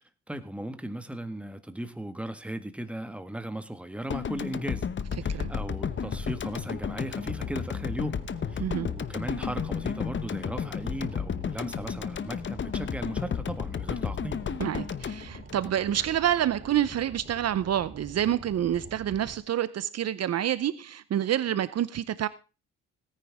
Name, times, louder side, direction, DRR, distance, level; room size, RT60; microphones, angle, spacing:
voice 1, 0.3-4.9 5.2-8.2 8.5-14.4, right 1 dB, 5° right, 1.7 m, -37 dB
sound 1, 4.1-16.3, left 7 dB, 40° left, 1.0 m, -33 dB
Boat Water vehicle, 5.1-19.3, right 3 dB, 30° right, 3.0 m, -47 dB
voice 2, 14.6-22.3, right 11 dB, 55° right, 0.8 m, -28 dB
17.5 x 10.0 x 3.6 m
cardioid pair, 90°, 30 cm